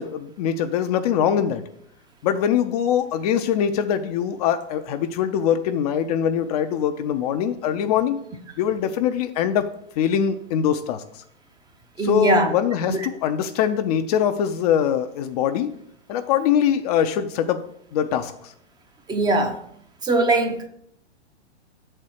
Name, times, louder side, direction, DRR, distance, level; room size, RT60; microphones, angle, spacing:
voice 1, 0.0-1.6 2.2-8.2 8.6-9.7 10.0-11.0 12.0-15.8 16.1-17.6 17.9-18.5, left 8 dB, 35° left, 0.5 m, -22 dB
voice 2, 12.0-12.5 12.9-13.0 19.1-19.6 20.0-20.7, right 2 dB, 10° right, 0.5 m, -20 dB
7.3 x 4.4 x 6.4 m
hypercardioid pair, 115°, 35 cm